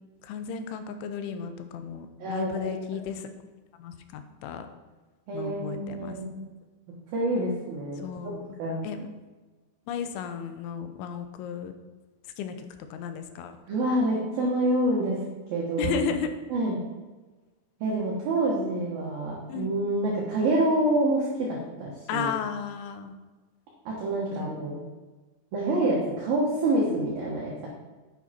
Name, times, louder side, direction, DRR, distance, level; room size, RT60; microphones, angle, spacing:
voice 1, 0.2-3.3 3.8-4.7 5.3-6.2 8.0-8.4 8.8-9.1 9.9-11.7 12.4-12.6 12.9-13.6 15.8-16.3 19.5-19.7 22.1-23.2 24.3-24.5, left 7 dB, 85° left, 8 dB, 3.1 m, -33 dB
voice 2, 2.2-2.8 5.3-6.4 7.1-8.0 8.6-8.8 13.7-15.2 15.5-16.0 16.5-16.8 17.8-22.3 23.9-24.8 25.5-27.7, right 1 dB, 60° right, -4 dB, 2.8 m, -27 dB
9.5 x 8.6 x 4.3 m, 1.2 s
omnidirectional pair, 5.5 m